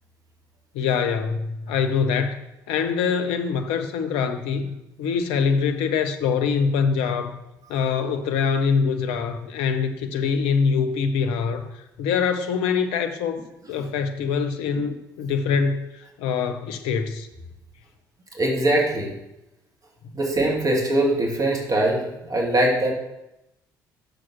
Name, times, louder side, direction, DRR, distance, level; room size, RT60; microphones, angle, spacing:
voice 1, 0.7-2.4 2.7-7.4 7.7-17.3, left 6 dB, 65° left, 8 dB, 0.7 m, -24 dB
voice 2, 18.3-19.1 20.1-22.9, right 1 dB, 35° right, 0 dB, 1.8 m, -22 dB
6.2 x 5.2 x 5.9 m, 0.90 s
figure-of-eight pair, 50°, 10 cm